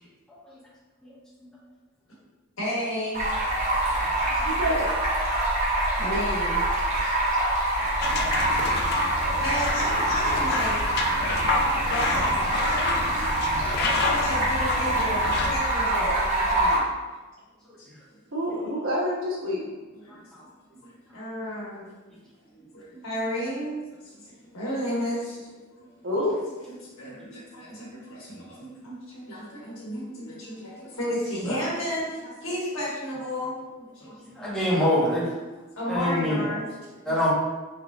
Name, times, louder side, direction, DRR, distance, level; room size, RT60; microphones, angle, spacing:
voice 1, 2.6-3.2 3.9-4.0 4.3-4.4 6.0-6.6 6.9-7.1 7.8-8.3 8.8-10.9 11.6-13.5 14.0-16.8 17.8-17.9 19.9-20.1 20.4-21.9 22.5-23.8 24.0-25.9 26.7-34.5 35.7-37.1, equal, 85° left, -6 dB, 1.4 m, -33 dB
Stream, 3.1-16.8, right 1 dB, 35° right, 0.9 m, -25 dB
voice 2, 4.4-4.9 18.3-19.6 26.0-26.3, equal, 80° right, -4 dB, 1.0 m, -27 dB
sound 1, 8.0-15.6, left 3 dB, 50° left, 0.3 m, -29 dB
voice 3, 20.1-20.4 27.2-27.3 31.5-31.6 34.3-35.3 35.9-36.6 37.0-37.3, left 1 dB, 5° left, -9 dB, 1.1 m, -26 dB
3.6 x 3.4 x 2.4 m, 1.2 s
head